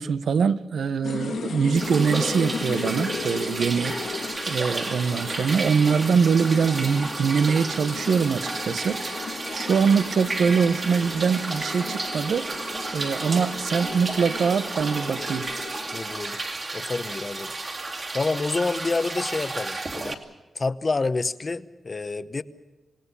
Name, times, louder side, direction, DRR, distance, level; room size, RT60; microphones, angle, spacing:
voice 1, 0.0-3.9 4.5-12.5 12.9-15.5, right 6 dB, 75° right, 0.8 m, -23 dB
sound 1, 1.0-16.1, left 5 dB, 85° left, 3.0 m, -36 dB
sound 2, 1.8-20.1, right 2 dB, 40° right, 2.5 m, -32 dB
voice 2, 15.9-16.4 16.7-17.5 18.1-20.1 20.5-22.4, left 3 dB, 35° left, 0.9 m, -28 dB
26.5 x 18.5 x 6.9 m
wide cardioid pair, 125°, 0 cm